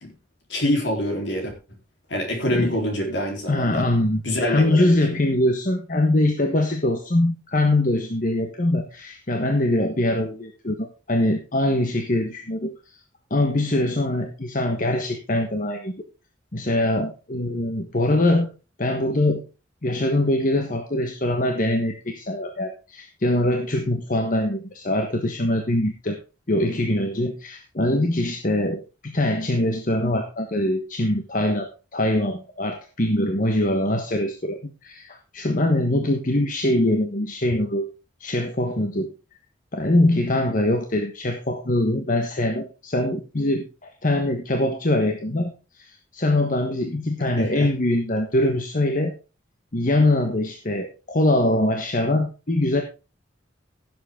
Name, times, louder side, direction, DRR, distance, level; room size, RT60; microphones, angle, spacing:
voice 1, 0.5-1.5 2.1-3.8 4.2-5.0 47.4-47.7, left 1 dB, 65° left, 2 dB, 3.8 m, -25 dB
voice 2, 3.5-12.7 13.3-15.9 16.5-18.5 18.8-19.4 19.8-26.2 26.5-37.9 38.2-39.1 39.7-49.1 49.7-52.8, left 1 dB, 45° left, 4 dB, 1.3 m, -23 dB
16.0 x 7.7 x 3.7 m, 0.31 s
head